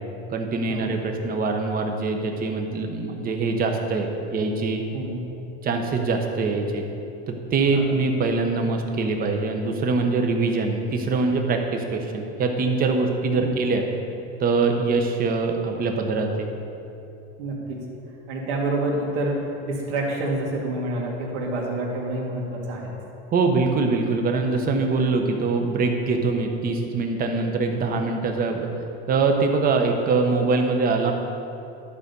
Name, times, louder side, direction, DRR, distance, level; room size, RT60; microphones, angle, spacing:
voice 1, 0.3-4.8 5.6-6.8 7.3-13.8 14.4-16.5 23.3-28.7 29.1-31.1, right 3 dB, 25° right, 4 dB, 1.0 m, -23 dB
voice 2, 17.4-17.9 18.3-22.9, right 2 dB, 75° right, -2 dB, 2.4 m, -28 dB
12.5 x 5.1 x 6.8 m, 2.8 s
supercardioid pair, 145°, 33 cm